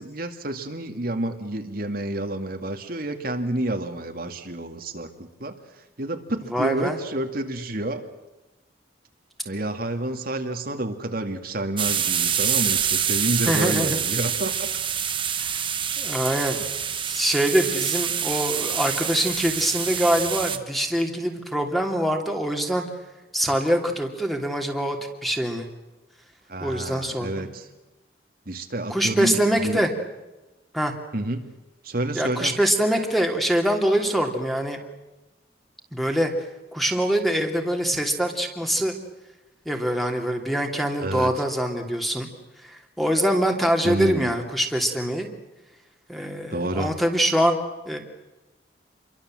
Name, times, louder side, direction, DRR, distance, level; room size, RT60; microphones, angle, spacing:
voice 1, 0.0-5.1 5.4-5.5 6.0-8.0 9.4-14.7 26.5-27.7 28.5-29.8 31.1-31.4 31.8-32.6 41.0-41.4 43.8-44.3 46.5-46.9, right 1 dB, 50° right, 5 dB, 2.2 m, -29 dB
voice 2, 6.5-7.0 13.5-14.0 15.4-15.5 16.0-16.6 17.1-22.8 23.3-25.0 25.2-25.7 26.6-27.5 28.9-29.9 30.7-30.9 32.1-34.8 35.9-36.3 36.7-38.9 39.6-42.3 42.6-45.3 46.1-47.6 47.9-48.0, equal, ahead, 3 dB, 2.9 m, -24 dB
sound 1, 11.8-20.6, right 8 dB, 25° right, 1.5 m, -26 dB
28.5 x 23.5 x 7.7 m, 1.1 s
head